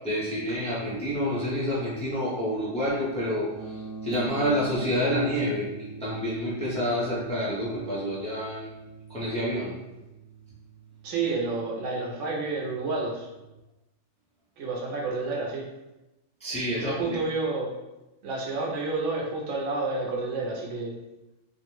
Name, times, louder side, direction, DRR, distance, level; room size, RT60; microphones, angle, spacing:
voice 1, 0.0-8.7 9.1-9.7 16.4-17.2, equal, 10° left, -8 dB, 0.4 m, -28 dB
sound 1, 3.5-13.6, right 4 dB, 50° right, 0.6 m, -43 dB
voice 2, 11.0-13.3 14.6-15.7 16.8-17.8 18.2-21.0, right 3 dB, 90° right, -1 dB, 1.0 m, -30 dB
2.4 x 2.0 x 3.0 m, 0.99 s
omnidirectional pair, 1.2 m